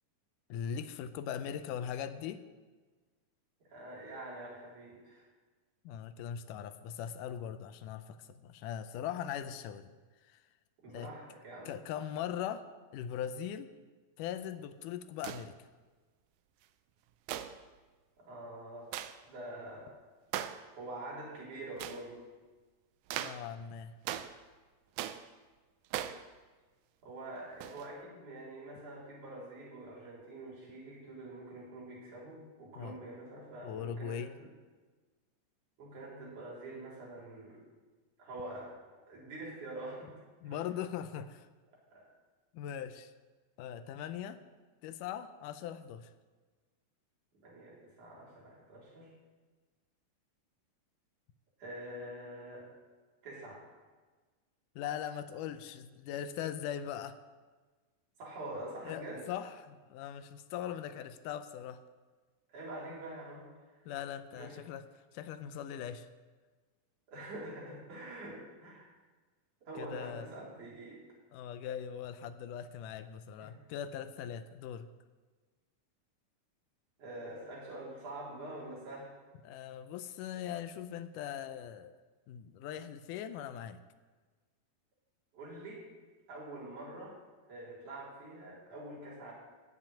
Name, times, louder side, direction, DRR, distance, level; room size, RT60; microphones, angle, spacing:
voice 1, 0.5-2.4 5.8-9.9 10.2-10.4 10.9-11.1 11.7-12.6 12.9-13.7 14.2-15.6 23.2-23.9 32.8-33.0 33.6-34.3 40.4-41.5 42.5-43.1 43.6-44.4 44.8-46.1 54.8-57.2 58.8-61.8 63.9-66.1 69.8-70.3 71.3-74.9 79.4-81.9 82.3-83.8, left 9 dB, 75° left, 11 dB, 2.0 m, -40 dB
voice 2, 3.6-5.3 10.8-11.7 18.2-18.9 19.3-20.0 20.8-22.2 27.0-34.5 35.8-37.6 38.2-38.8 39.1-40.1 40.4-40.6 41.9-42.1 47.4-49.1 51.6-52.7 53.2-53.8 58.2-59.3 62.5-63.9 64.3-64.6 67.1-68.9 69.6-71.0 73.4-73.6 77.0-79.1 85.3-85.9 86.3-89.3, right 1 dB, 60° right, -5 dB, 5.2 m, -45 dB
sound 1, 15.2-15.5 17.3-17.6 18.9-19.2 20.3-20.7 21.8-22.0 23.1-23.5 24.1-24.4 25.0-25.3 25.9-26.3 27.6-27.9, right 11 dB, 80° right, 1.9 m, -39 dB
15.0 x 6.1 x 8.9 m, 1.4 s
omnidirectional pair, 4.0 m